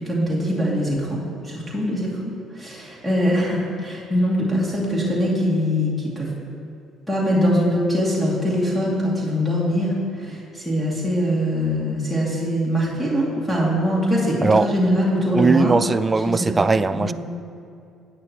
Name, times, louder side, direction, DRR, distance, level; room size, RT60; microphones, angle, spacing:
voice 1, 0.0-6.3 7.1-15.7 16.3-16.6 16.9-17.1, equal, 5° left, -6 dB, 2.4 m, -22 dB
voice 2, 15.3-17.1, right 4 dB, 20° right, 14 dB, 0.3 m, -19 dB
13.5 x 9.0 x 3.0 m, 2.6 s
supercardioid pair, 90°, 0 cm